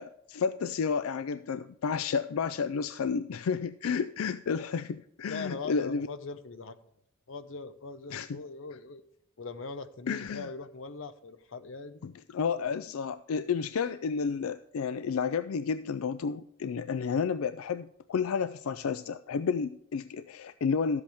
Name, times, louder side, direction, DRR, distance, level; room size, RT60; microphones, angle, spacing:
voice 1, 0.0-6.1 8.1-8.4 10.1-10.5 12.0-21.0, left 6 dB, 90° left, 13 dB, 0.4 m, -31 dB
voice 2, 5.3-6.8 7.3-9.0 9.4-12.1 12.4-12.6, left 4 dB, 65° left, 11 dB, 0.8 m, -41 dB
12.5 x 7.9 x 3.4 m, 0.76 s
head